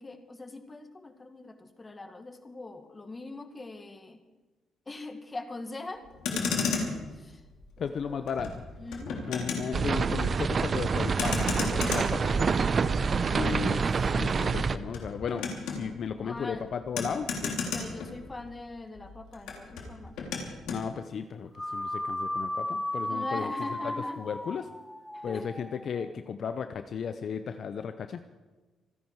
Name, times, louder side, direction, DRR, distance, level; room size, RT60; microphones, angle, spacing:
voice 1, 0.0-4.2 4.9-7.4 7.8-8.3 8.8-9.4 13.3-13.9 16.2-16.7 17.7-20.1 23.1-24.2 25.1-25.5, left 2 dB, 25° left, 7 dB, 1.9 m, -42 dB
Motor vehicle (road), 6.0-18.7 18.9-20.8, left 5 dB, 85° left, 3.3 m, -35 dB
voice 2, 7.8-8.5 9.3-12.5 13.3-13.8 14.1-17.8 20.7-23.5 23.8-24.7 25.2-28.2, left 6 dB, 55° left, 9 dB, 0.8 m, -35 dB
sound 1, 9.7-14.8, right 5 dB, 40° right, 0.7 m, -27 dB
sound 2, 21.5-26.1, left 1 dB, 10° left, 0.8 m, -35 dB
26.5 x 10.0 x 4.8 m, 1.2 s
cardioid pair, 90°, 0 cm